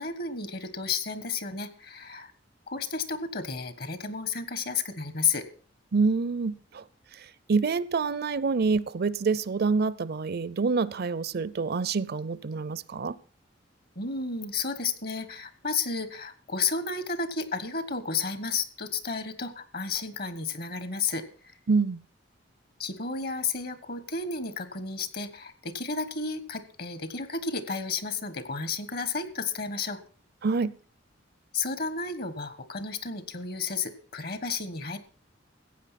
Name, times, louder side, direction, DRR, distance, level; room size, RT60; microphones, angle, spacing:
voice 1, 0.0-2.3 2.7-5.5 13.9-21.2 22.8-30.0 31.5-35.0, left 5 dB, 55° left, 13 dB, 1.4 m, -32 dB
voice 2, 5.9-6.8 7.1-13.2 21.7-22.0 30.4-30.7, right 4 dB, 55° right, 20 dB, 0.5 m, -27 dB
15.5 x 8.8 x 5.8 m, 0.42 s
head